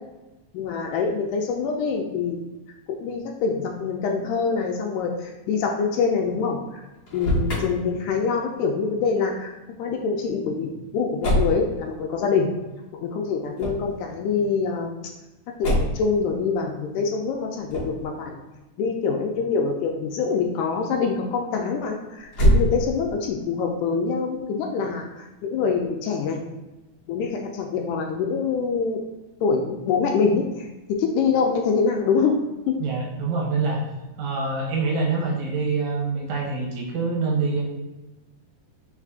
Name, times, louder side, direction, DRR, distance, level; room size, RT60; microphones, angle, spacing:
voice 1, 0.5-2.4 2.9-6.8 7.1-9.5 9.8-12.5 12.9-14.9 15.6-18.3 18.8-26.4 27.1-29.0 29.4-32.3 32.7-32.8, left 5 dB, 80° left, 2 dB, 1.9 m, -25 dB
Motor vehicle (road), 7.1-7.6 11.2-11.6 13.5-13.9 15.6-16.1 17.7-18.0 22.3-23.1, equal, 60° left, 0.8 m, -22 dB
voice 2, 32.8-33.9 34.2-37.6, right 4 dB, 75° right, -2 dB, 2.0 m, -25 dB
4.7 x 4.3 x 2.4 m, 1.1 s
omnidirectional pair, 3.8 m